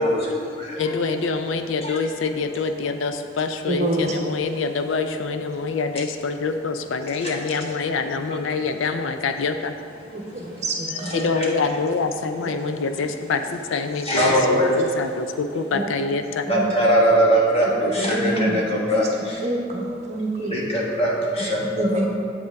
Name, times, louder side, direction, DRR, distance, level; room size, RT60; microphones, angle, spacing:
voice 1, 0.0-0.9 1.8-2.0 7.2-7.3 10.3-10.5 11.0-11.4 14.0-14.7 16.5-19.5 20.4-22.1, equal, 30° left, -4 dB, 1.4 m, -22 dB
voice 2, 0.8-9.7 11.1-16.5, left 4 dB, 75° left, 7 dB, 0.4 m, -25 dB
voice 3, 3.7-4.2 10.1-11.2 15.7-15.8 16.5-16.7 17.9-18.6 18.9-19.1 19.4-20.5 21.8-22.1, right 2 dB, 35° right, -1 dB, 1.0 m, -26 dB
8.2 x 7.9 x 3.5 m, 2.4 s
head